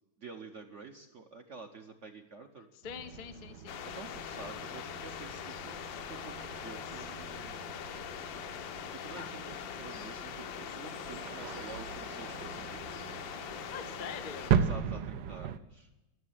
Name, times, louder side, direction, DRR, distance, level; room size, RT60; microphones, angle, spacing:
voice 1, 0.2-2.7 3.8-7.8 8.9-13.2 14.5-15.9, right 4 dB, 55° right, 4 dB, 0.9 m, -49 dB
voice 2, 2.8-4.0 4.3-4.5 13.7-14.5, left 7 dB, 55° left, 7 dB, 0.5 m, -44 dB
sound 1, 2.8-15.6, right 8 dB, 70° right, 1.2 m, -38 dB
sound 2, 3.7-14.5, left 10 dB, 75° left, 1.4 m, -42 dB
13.0 x 7.4 x 9.4 m, 1.0 s
omnidirectional pair, 2.2 m